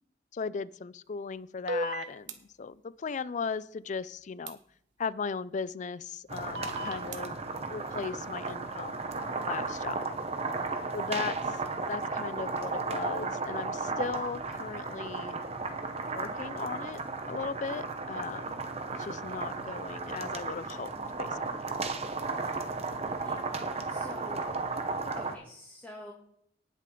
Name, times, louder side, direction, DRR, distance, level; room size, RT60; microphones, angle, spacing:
voice 1, 0.3-4.6 5.0-10.2 10.9-11.6 11.9-15.4 16.1-17.0 17.3-18.6 19.0-20.9 21.2-21.7, left 5 dB, 45° left, 18 dB, 0.4 m, -37 dB
sound 1, 1.7-2.3 4.5-4.6 6.6-7.2, equal, 85° right, 1.1 m, -33 dB
sound 2, 6.3-25.4, right 3 dB, 35° right, 0.9 m, -35 dB
voice 2, 23.2-23.6 23.9-24.5 25.1-26.1, equal, 10° left, -6 dB, 2.4 m, -47 dB
18.5 x 6.5 x 3.8 m, 0.70 s
head